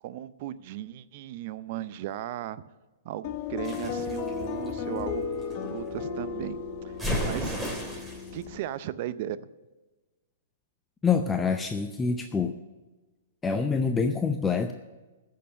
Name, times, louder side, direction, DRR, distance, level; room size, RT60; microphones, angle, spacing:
voice 1, 0.0-2.6 3.0-7.6 7.9-8.1 8.3-9.5, right 12 dB, 50° right, 16 dB, 0.5 m, -37 dB
sound 1, 3.2-8.6, left 5 dB, 45° left, 1.1 m, -34 dB
sound 2, 3.6-5.5 7.0-8.3, equal, 10° right, 2.8 m, -33 dB
voice 2, 11.0-12.6 13.4-14.7, left 5 dB, 15° left, 6 dB, 0.6 m, -26 dB
15.0 x 6.6 x 6.4 m, 1.2 s
hypercardioid pair, 120°, 0 cm